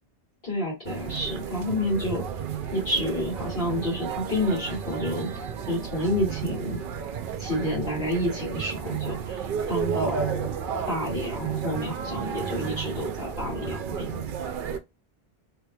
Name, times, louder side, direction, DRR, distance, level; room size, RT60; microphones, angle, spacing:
voice 1, 0.4-2.2 2.7-5.3 5.7-6.8 7.4-10.5 10.9-14.3, left 1 dB, 65° left, -5 dB, 2.0 m, -29 dB
sound 1, 0.8-14.8, right 7 dB, 60° right, 0.6 m, -32 dB
3.3 x 3.2 x 2.3 m, 0.23 s
omnidirectional pair, 1.1 m